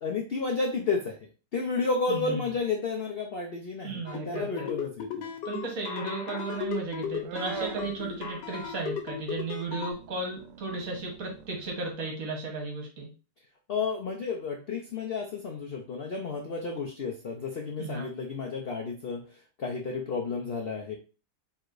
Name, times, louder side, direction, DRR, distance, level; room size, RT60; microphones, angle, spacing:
voice 1, 0.0-1.2 1.5-5.3 13.7-19.2 19.6-21.0, left 4 dB, 65° left, 1 dB, 0.5 m, -31 dB
voice 2, 2.1-2.5 3.8-4.7 5.4-13.1 17.8-18.1, right 3 dB, 55° right, 0 dB, 1.5 m, -35 dB
sound 1, 4.1-9.9, left 7 dB, 85° left, 1.4 m, -36 dB
sound 2, 6.6-9.1 9.4-11.8, right 8 dB, 75° right, 0.7 m, -43 dB
4.7 x 3.3 x 2.5 m, 0.34 s
omnidirectional pair, 1.9 m